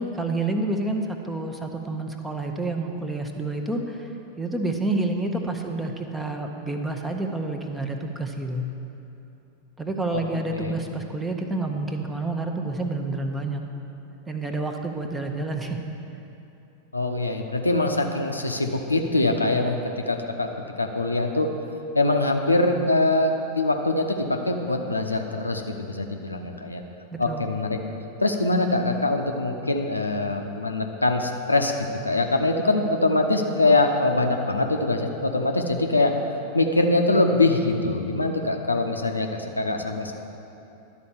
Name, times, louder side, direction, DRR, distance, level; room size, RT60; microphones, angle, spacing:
voice 1, 0.0-8.6 9.8-13.6 14.3-15.8 27.1-27.4, right 2 dB, 10° right, 4 dB, 0.7 m, -29 dB
voice 2, 16.9-20.5 20.8-21.5 21.9-26.8 27.2-27.8 28.2-31.7 32.0-36.1 36.5-40.1, left 2 dB, 80° left, 3 dB, 0.6 m, -23 dB
11.5 x 4.3 x 7.0 m, 2.9 s
figure-of-eight pair, 90°, 0 cm